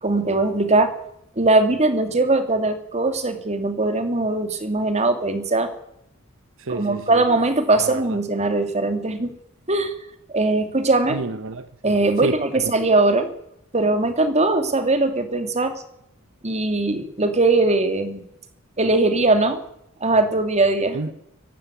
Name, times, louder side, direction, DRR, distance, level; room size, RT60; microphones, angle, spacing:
voice 1, 0.0-0.9 1.4-5.7 6.7-9.3 9.7-9.9 10.3-11.2 11.8-13.3 13.7-15.7 16.4-18.2 18.8-19.6 20.0-21.0, right 2 dB, 30° right, 8 dB, 2.8 m, -20 dB
voice 2, 6.6-7.2 7.8-8.2 11.1-12.7 20.9-21.1, right 3 dB, 65° right, 12 dB, 1.0 m, -30 dB
24.0 x 12.0 x 9.5 m, 0.77 s
head